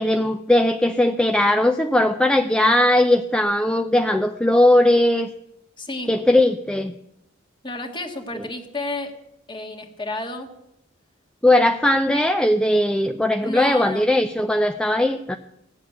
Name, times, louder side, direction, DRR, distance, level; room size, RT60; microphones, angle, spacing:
voice 1, 0.0-5.3 6.1-6.9 11.4-15.4, left 1 dB, 5° left, 6 dB, 0.5 m, -19 dB
voice 2, 5.8-6.1 7.6-9.1 9.5-10.5 13.4-14.1, left 2 dB, 25° left, 3 dB, 1.7 m, -31 dB
16.0 x 7.4 x 9.3 m, 0.83 s
head